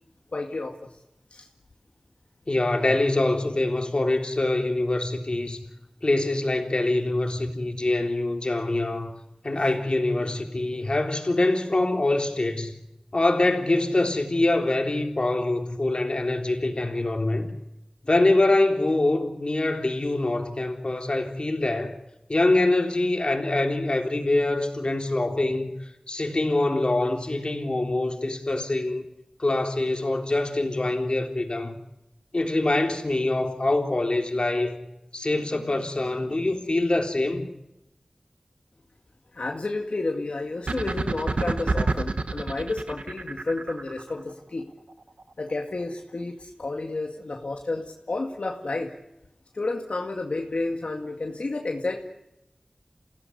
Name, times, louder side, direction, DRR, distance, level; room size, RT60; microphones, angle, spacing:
voice 1, 0.3-0.7 1.3-1.4 39.3-44.6 45.4-48.9 49.5-52.0, left 2 dB, 85° left, 2.0 m, -31 dB
voice 2, 2.5-5.6 6.0-9.1 9.4-12.7 13.1-17.5 18.0-22.0 22.3-25.7 26.1-29.0 29.4-31.8 32.3-34.8 35.1-37.5, left 2 dB, 55° left, 3.5 m, -24 dB
sound 1, 40.7-44.1, right 3 dB, 85° right, 1.1 m, -27 dB
28.0 x 16.5 x 9.8 m
wide cardioid pair, 60°, 2 cm